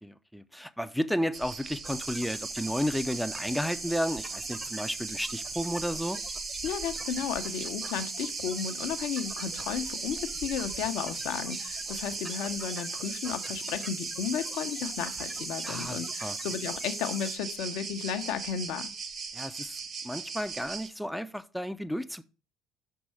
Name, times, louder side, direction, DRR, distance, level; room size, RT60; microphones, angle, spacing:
voice 1, 0.0-6.2 15.7-16.4 19.3-19.7 20.0-22.2, equal, ahead, 0.6 m, -32 dB
sound 1, 1.3-20.9, right 5 dB, 40° right, 1.2 m, -39 dB
sound 2, 1.8-17.4, right 2 dB, 15° right, 0.9 m, -39 dB
voice 2, 6.6-18.9, left 8 dB, 60° left, 0.8 m, -34 dB
6.1 x 4.6 x 5.5 m
figure-of-eight pair, 55°, 0 cm